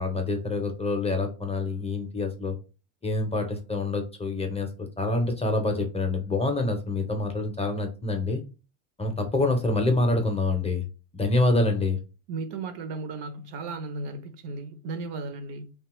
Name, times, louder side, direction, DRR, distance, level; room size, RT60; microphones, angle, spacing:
voice 1, 0.0-2.6 3.0-8.4 9.0-10.9 11.1-12.0, left 2 dB, 15° left, 0.5 m, -26 dB
voice 2, 12.3-15.7, right 3 dB, 65° right, 0.7 m, -35 dB
2.7 x 2.3 x 2.9 m
supercardioid pair, 100°, 45 cm